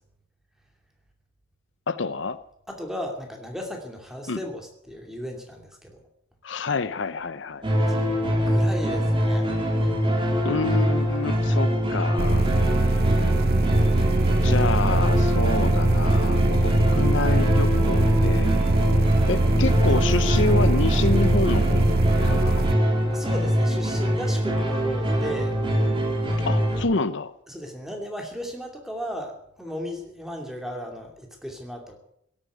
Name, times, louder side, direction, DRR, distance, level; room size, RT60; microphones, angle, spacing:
voice 1, 1.9-2.4 4.3-4.4 6.4-7.6 10.4-12.5 14.4-18.5 19.3-22.6 26.5-27.3, left 3 dB, 65° left, 13 dB, 0.7 m, -28 dB
voice 2, 2.7-6.0 7.9-9.5 9.8-9.9 23.1-25.5 27.5-32.0, equal, ahead, 2 dB, 2.6 m, -35 dB
sound 1, 7.6-26.8, equal, 25° right, 3.4 m, -23 dB
sound 2, 12.2-22.7, right 2 dB, 50° right, 0.6 m, -22 dB
16.5 x 8.9 x 9.3 m, 0.73 s
head